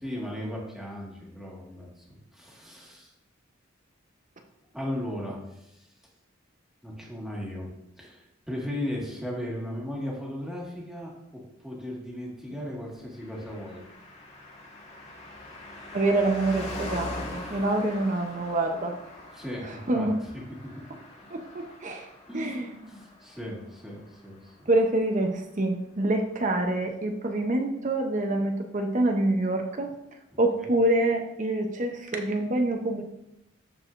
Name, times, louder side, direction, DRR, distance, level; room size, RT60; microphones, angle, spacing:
voice 1, 0.0-3.1 4.7-5.9 6.8-7.7 8.0-13.8 19.3-20.1 20.3-20.4 21.2-21.3 22.2-24.7 30.6-30.7, left 1 dB, ahead, -4 dB, 1.8 m, -37 dB
Car passing by, 13.2-25.0 25.3-25.4, left 1 dB, 35° left, 1.8 m, -42 dB
voice 2, 15.9-18.9 19.9-20.1 21.3-22.1 22.3-22.7 24.7-29.9 30.4-33.0, right 2 dB, 40° right, 4 dB, 0.7 m, -26 dB
13.5 x 4.8 x 2.6 m, 0.84 s
head